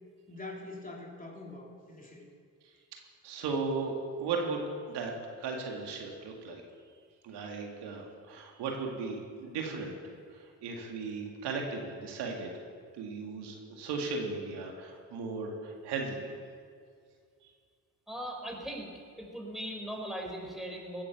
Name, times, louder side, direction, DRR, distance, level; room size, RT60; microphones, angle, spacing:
voice 1, 0.3-2.3, left 2 dB, 20° left, -1 dB, 3.3 m, -44 dB
voice 2, 3.2-5.1 5.4-6.6 7.2-9.9 10.4-12.5 12.9-16.2, right 4 dB, 80° right, 1 dB, 2.1 m, -36 dB
voice 3, 18.1-18.9 19.2-21.0, equal, ahead, 0 dB, 4.6 m, -39 dB
16.0 x 9.6 x 7.1 m, 2.2 s
supercardioid pair, 60°, 40 cm